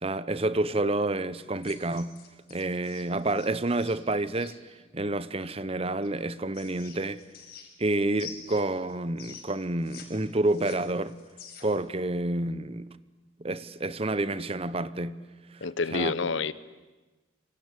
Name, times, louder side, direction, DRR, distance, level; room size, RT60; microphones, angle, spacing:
voice 1, 0.0-2.2 2.5-4.6 4.9-7.2 7.8-11.2 11.6-12.9 13.4-15.2 15.5-15.6 15.9-16.1, right 2 dB, 30° right, 0.8 m, -29 dB
sound 1, 1.6-4.6 6.0-7.9 8.2-10.0 10.3-11.8, left 7 dB, 50° left, 5.7 m, -47 dB
voice 2, 15.6-16.5, left 4 dB, 70° left, 1.0 m, -28 dB
26.5 x 25.0 x 8.4 m
head